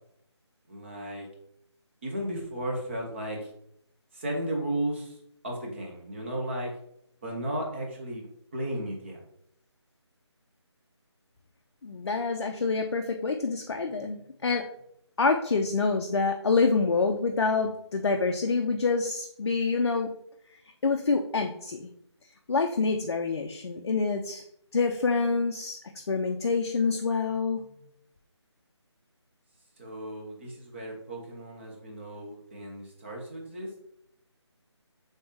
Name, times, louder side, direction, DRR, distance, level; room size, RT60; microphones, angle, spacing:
voice 1, 0.7-1.3 2.0-3.4 4.1-5.2 5.4-6.7 7.2-8.2 8.5-9.2 29.8-33.7, right 1 dB, 25° right, -1 dB, 0.7 m, -34 dB
voice 2, 11.8-14.6 15.2-20.1 20.8-21.9 22.5-24.4 24.7-25.8 26.1-27.6, left 4 dB, 60° left, 4 dB, 0.4 m, -26 dB
3.4 x 3.2 x 2.8 m, 0.73 s
figure-of-eight pair, 160°, 15 cm